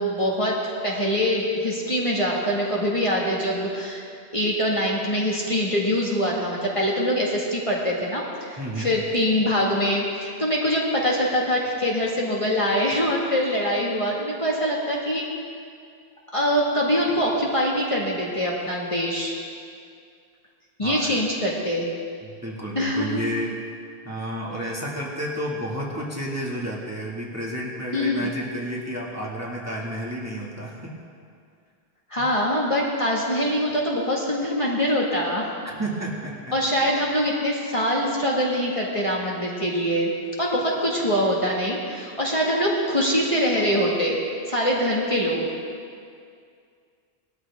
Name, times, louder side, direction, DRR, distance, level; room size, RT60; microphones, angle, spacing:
voice 1, 0.0-4.0 4.3-15.3 16.3-19.4 20.8-21.9 22.7-23.2 27.9-28.3 32.1-35.5 36.5-40.1 40.4-44.2 44.5-45.4, equal, 30° left, -4 dB, 1.9 m, -24 dB
voice 2, 8.6-8.9 20.8-21.2 22.2-23.5 24.0-30.9 32.2-32.3 35.6-36.5, equal, 15° right, -5 dB, 2.1 m, -31 dB
20.0 x 13.5 x 3.6 m, 2.3 s
omnidirectional pair, 1.1 m